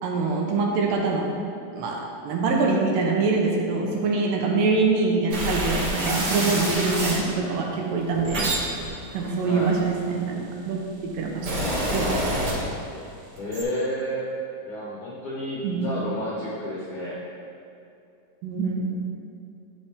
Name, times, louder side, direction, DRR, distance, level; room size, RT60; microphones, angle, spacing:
voice 1, 0.0-1.3 1.7-8.5 9.1-10.8 11.1-12.6 15.6-15.9 18.4-19.0, right 4 dB, 90° right, 0 dB, 2.6 m, -24 dB
sound 1, 5.3-7.2 7.9-10.3 11.0-13.0 13.3-13.6, right 1 dB, 55° right, 2.6 m, -27 dB
voice 2, 9.4-9.8 13.4-14.2 14.7-17.2, equal, 65° left, -7 dB, 1.3 m, -30 dB
10.0 x 5.5 x 3.6 m, 2.6 s
omnidirectional pair, 3.8 m